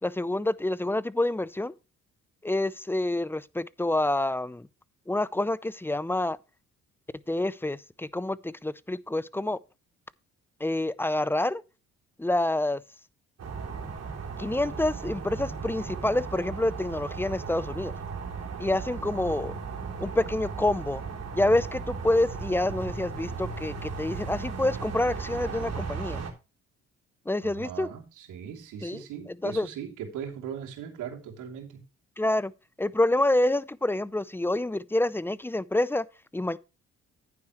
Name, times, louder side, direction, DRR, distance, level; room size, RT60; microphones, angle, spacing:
voice 1, 0.0-1.8 2.4-4.7 5.1-6.4 7.3-9.6 10.6-11.6 12.2-12.8 14.4-17.9 18.6-19.5 20.0-21.0 21.3-26.2 27.3-27.9 28.8-29.0 29.4-29.7 32.2-32.5 32.8-36.0 36.3-36.6, left 1 dB, 5° left, 0.5 m, -27 dB
sound 1, 13.4-26.3, right 5 dB, 55° right, 3.5 m, -36 dB
voice 2, 27.4-31.8, right 8 dB, 85° right, 2.9 m, -39 dB
11.0 x 9.5 x 3.0 m
cardioid pair, 90°, 30 cm